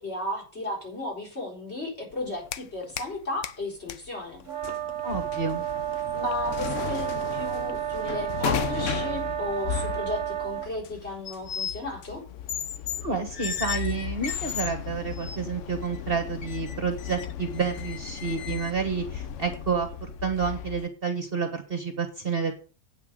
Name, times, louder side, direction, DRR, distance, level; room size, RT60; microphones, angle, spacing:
voice 1, 0.0-4.5 6.1-12.2, left 1 dB, 45° left, -2 dB, 4.7 m, -34 dB
sound 1, 2.1-3.2 3.4-20.9, left 9 dB, 65° left, 0.9 m, -36 dB
sound 2, 4.5-10.7, right 11 dB, 60° right, 1.3 m, -31 dB
voice 2, 5.0-5.6 13.0-22.5, right 5 dB, 40° right, 6 dB, 1.5 m, -29 dB
sound 3, 11.3-11.8 12.5-13.0 13.3-14.7 15.1-15.4 15.8-16.0 16.4-18.7, left 8 dB, 80° left, 1.5 m, -35 dB
8.8 x 5.9 x 7.9 m, 0.36 s
omnidirectional pair, 1.5 m